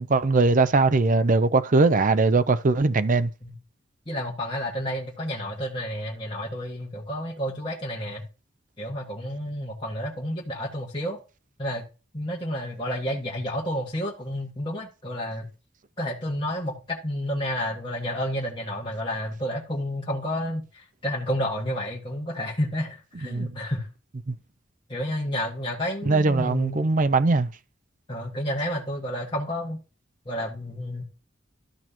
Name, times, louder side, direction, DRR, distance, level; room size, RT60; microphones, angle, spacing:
voice 1, 0.0-3.3 23.3-23.5 24.3-24.4 26.1-27.5, right 3 dB, 45° right, 0.6 m, -20 dB
voice 2, 4.1-8.2 8.8-11.2 11.6-11.9 12.1-15.5 16.0-23.9 24.9-26.9 28.1-29.8 30.2-31.0, equal, 25° left, 1.8 m, -30 dB
13.0 x 6.0 x 2.9 m
head